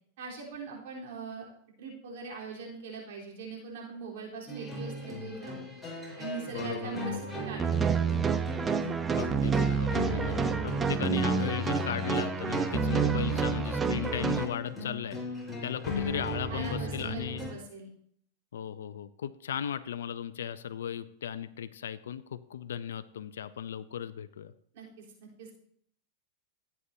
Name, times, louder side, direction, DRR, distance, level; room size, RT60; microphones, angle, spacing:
voice 1, 0.2-1.5 1.8-5.7 6.2-7.2 7.4-8.3 16.5-17.9 24.7-25.5, right 4 dB, 70° right, -3 dB, 3.9 m, -41 dB
sound 1, 4.5-17.5, left 1 dB, ahead, 4.4 m, -37 dB
voice 2, 6.5-7.1 9.1-15.2 15.6-17.5 18.5-24.5, left 9 dB, 85° left, 11 dB, 0.5 m, -36 dB
sound 2, 7.6-14.4, right 5 dB, 20° right, 0.8 m, -28 dB
16.5 x 8.3 x 2.8 m, 0.67 s
hypercardioid pair, 120°, 0 cm